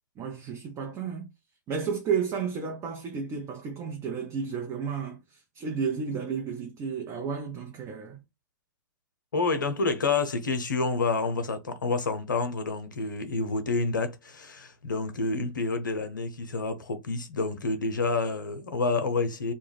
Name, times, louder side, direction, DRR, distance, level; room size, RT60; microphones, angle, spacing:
voice 1, 0.2-1.3 1.7-8.2, right 6 dB, 30° right, 0.7 m, -32 dB
voice 2, 9.3-19.5, left 3 dB, 85° left, 0.6 m, -28 dB
2.2 x 2.1 x 3.3 m
hypercardioid pair, 105°, 10 cm